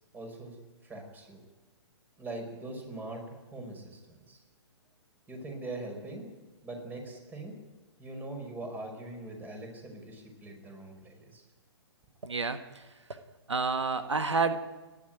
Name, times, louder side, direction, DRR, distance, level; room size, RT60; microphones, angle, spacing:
voice 1, 0.1-0.6 0.8-1.4 2.2-4.4 5.3-6.3 6.6-7.6 8.0-11.4, right 2 dB, 10° right, 4 dB, 5.2 m, -42 dB
voice 2, 12.2-12.8 13.5-14.7, right 4 dB, 85° right, 8 dB, 1.5 m, -29 dB
29.5 x 11.5 x 9.2 m, 1.3 s
figure-of-eight pair, 125°, 14 cm